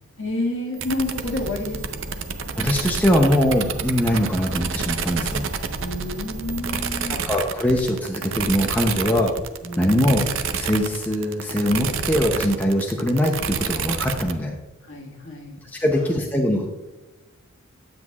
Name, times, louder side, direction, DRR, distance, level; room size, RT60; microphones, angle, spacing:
voice 1, 0.2-2.2 5.8-7.2 9.6-10.0 14.8-15.6 15.9-16.2, left 2 dB, 60° left, 0 dB, 1.7 m, -30 dB
sound 1, 0.8-14.3, right 6 dB, 60° right, 0.5 m, -29 dB
sound 2, 1.1-6.9, equal, 90° right, 1.4 m, -35 dB
voice 2, 2.6-5.5 7.1-9.3 9.8-10.3 10.5-14.5 15.7-16.7, equal, 10° left, 0 dB, 0.6 m, -22 dB
9.4 x 8.0 x 2.4 m, 1.1 s
head